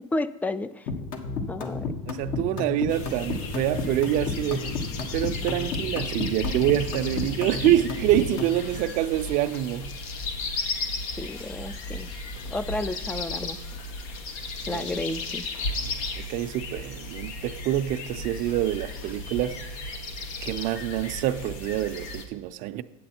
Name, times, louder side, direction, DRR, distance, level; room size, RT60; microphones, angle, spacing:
voice 1, 0.1-0.9 1.5-1.9 11.2-12.1 12.5-13.6 14.7-15.4, left 2 dB, 10° left, 0.3 m, -31 dB
sound 1, 0.9-8.6, left 4 dB, 55° left, 1.2 m, -31 dB
voice 2, 2.1-4.7 5.1-9.9 14.7-14.9 15.8-16.0 16.3-19.6 20.4-22.8, right 13 dB, 55° right, 0.5 m, -26 dB
sound 2, 2.9-22.2, left 2 dB, 80° left, 1.2 m, -35 dB
8.4 x 7.8 x 4.3 m
supercardioid pair, 125°, 17 cm